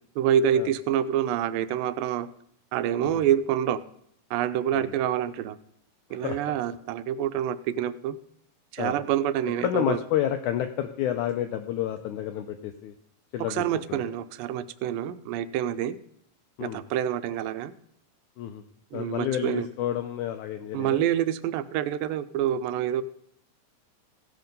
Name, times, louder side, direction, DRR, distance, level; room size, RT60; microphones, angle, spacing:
voice 1, 0.2-2.3 2.7-3.8 4.3-5.6 6.1-8.2 8.7-10.0 13.5-16.0 16.6-17.7 18.9-19.7 20.7-23.0, right 10 dB, 80° right, 13 dB, 2.2 m, -27 dB
voice 2, 9.6-12.9 13.3-13.6 13.9-14.0 16.6-16.8 18.4-18.6 18.9-21.0, left 11 dB, 85° left, 8 dB, 1.7 m, -29 dB
16.0 x 5.8 x 5.3 m, 0.72 s
omnidirectional pair, 4.1 m